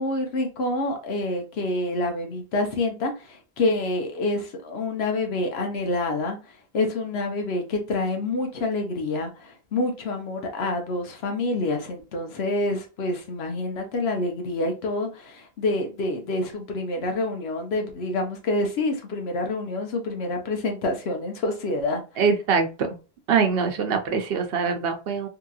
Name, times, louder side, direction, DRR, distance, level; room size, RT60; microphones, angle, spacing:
voice 1, 0.0-22.0, left 2 dB, 90° left, 1.0 m, -27 dB
voice 2, 22.2-22.9 23.3-25.3, right 5 dB, 70° right, 0.8 m, -23 dB
2.9 x 2.7 x 2.3 m
omnidirectional pair, 1.0 m